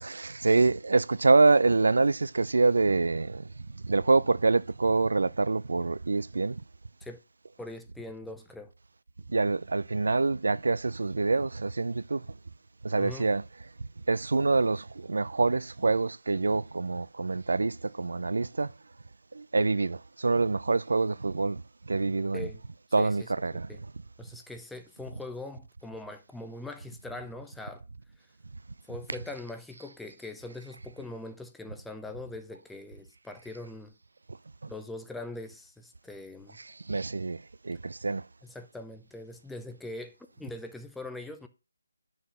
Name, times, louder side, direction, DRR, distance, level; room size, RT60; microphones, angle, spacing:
voice 1, 0.0-3.5 3.8-6.6 9.3-12.2 12.8-13.4 14.1-18.7 19.3-21.6 21.9-22.5 22.9-23.7 36.9-37.4 37.6-38.2, right 3 dB, 70° right, 0.5 m, -26 dB
voice 2, 7.6-8.7 13.0-13.3 22.3-22.6 23.0-23.3 23.7-23.8 24.2-27.8 28.9-33.9 34.7-36.6 38.4-41.5, left 2 dB, ahead, 0.7 m, -42 dB
9.5 x 6.4 x 5.6 m
figure-of-eight pair, 165°, 0 cm